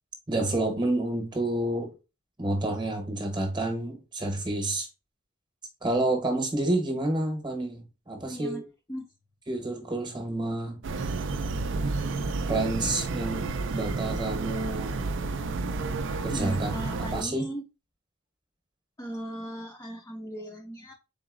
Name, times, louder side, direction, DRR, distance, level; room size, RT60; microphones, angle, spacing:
voice 1, 0.3-1.9 2.4-4.9 5.8-8.6 9.5-10.8 12.5-15.1 16.2-17.5, right 2 dB, 20° right, 0.9 m, -29 dB
voice 2, 8.2-8.6 8.9-9.1 16.1-17.6 19.0-20.9, right 1 dB, 10° left, 0.4 m, -37 dB
sound 1, 10.8-17.2, right 3 dB, 55° right, 0.4 m, -31 dB
3.9 x 3.8 x 2.4 m
head